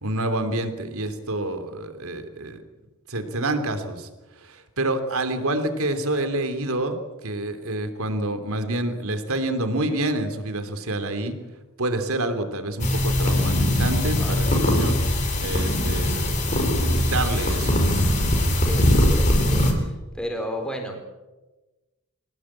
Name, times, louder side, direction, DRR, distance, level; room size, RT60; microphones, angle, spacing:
voice 1, 0.0-2.6 3.1-4.1 4.4-7.0 7.2-11.3 11.8-15.0 15.4-16.1 16.9-18.1, right 2 dB, 75° right, 8 dB, 3.2 m, -27 dB
sound 1, 12.8-19.7, left 1 dB, 35° left, 3.9 m, -21 dB
voice 2, 14.1-14.7 18.6-19.6 20.1-21.0, equal, 5° left, 3 dB, 4.4 m, -33 dB
26.0 x 18.0 x 8.8 m, 1.1 s
head